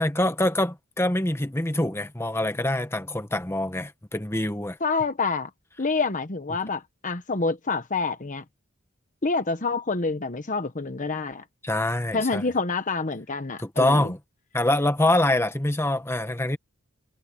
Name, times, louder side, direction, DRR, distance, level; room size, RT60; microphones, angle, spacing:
voice 1, 0.0-4.8 11.6-12.4 13.6-14.2 14.5-16.6, left 1 dB, 10° left, 1.3 m, -25 dB
voice 2, 4.8-5.5 5.8-8.4 9.2-11.4 12.1-14.1, left 4 dB, 35° left, 1.1 m, -27 dB
head